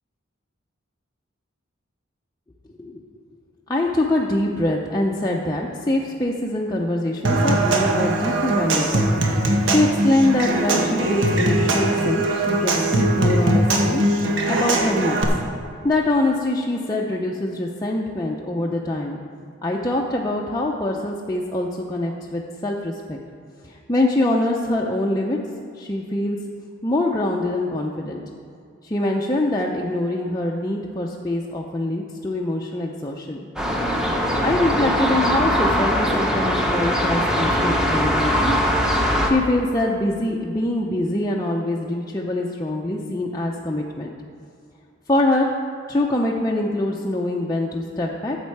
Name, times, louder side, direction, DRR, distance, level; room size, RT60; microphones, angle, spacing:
voice 1, 3.7-9.1 9.6-14.0 14.5-15.2 15.8-19.2 19.6-23.2 23.7-25.4 25.7-26.4 26.8-28.2 28.8-33.4 34.4-38.5 39.2-44.1 45.1-45.5 45.9-48.4, left 1 dB, 20° left, -2 dB, 0.6 m, -24 dB
Human voice / Acoustic guitar / Percussion, 7.2-15.2, right 1 dB, 80° right, 1.3 m, -21 dB
sound 1, 33.6-39.3, equal, 5° right, 1.0 m, -21 dB
13.0 x 7.4 x 4.7 m, 2.4 s
head